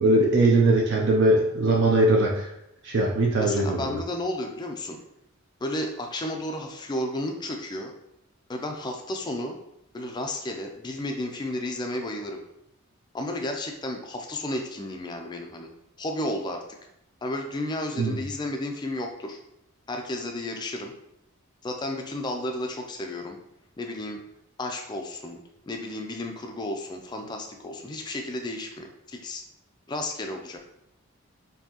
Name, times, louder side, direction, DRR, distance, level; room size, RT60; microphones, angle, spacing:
voice 1, 0.0-2.5 2.8-4.0 18.0-18.2, right 2 dB, 55° right, -2 dB, 0.5 m, -21 dB
voice 2, 3.4-5.0 5.6-7.9 8.5-9.6 9.9-12.4 13.1-15.7 16.0-16.6 17.2-19.4 19.9-20.9 21.6-23.4 23.8-24.2 24.6-25.4 25.7-29.4 29.9-30.6, left 1 dB, 20° left, 3 dB, 0.3 m, -32 dB
4.4 x 2.7 x 2.8 m, 0.82 s
head